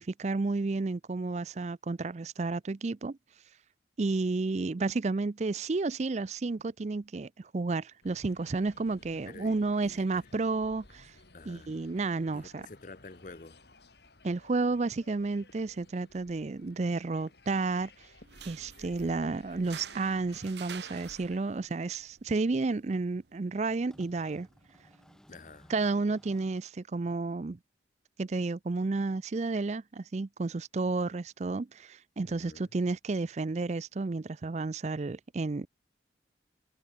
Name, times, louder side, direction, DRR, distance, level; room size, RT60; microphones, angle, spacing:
voice 1, 0.0-3.2 4.0-11.1 11.5-12.7 14.2-17.9 18.5-24.5 25.7-27.6 28.2-35.7, right 3 dB, 40° right, 0.4 m, -31 dB
sound 1, 8.0-21.4, left 2 dB, 65° left, 3.4 m, -57 dB
voice 2, 9.3-9.6 9.8-10.2 11.3-11.7 12.3-13.6 25.3-25.7 32.3-32.7, left 3 dB, 45° left, 0.8 m, -49 dB
sound 2, 15.8-15.9 17.3-17.4 17.7-17.8 19.0-19.1 20.8-20.9 21.8-21.9 22.4-22.6 23.9-26.6, equal, 5° left, 2.3 m, -58 dB
sound 3, 18.2-25.2, right 8 dB, 70° right, 0.9 m, -51 dB
head